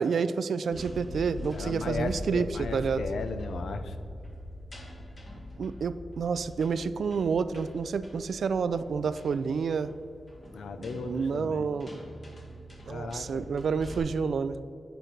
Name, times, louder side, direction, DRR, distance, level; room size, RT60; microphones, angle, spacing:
voice 1, 0.0-2.5 2.7-3.0 5.6-9.9 11.0-11.9 12.9-14.6, right 5 dB, 70° right, 14 dB, 0.3 m, -29 dB
sound 1, 0.7-14.0, left 1 dB, 35° left, 1.3 m, -42 dB
voice 2, 1.5-4.0 10.5-11.7 12.9-13.5, left 4 dB, 85° left, 9 dB, 0.6 m, -36 dB
9.1 x 5.1 x 5.9 m, 2.5 s
wide cardioid pair, 125°, 0 cm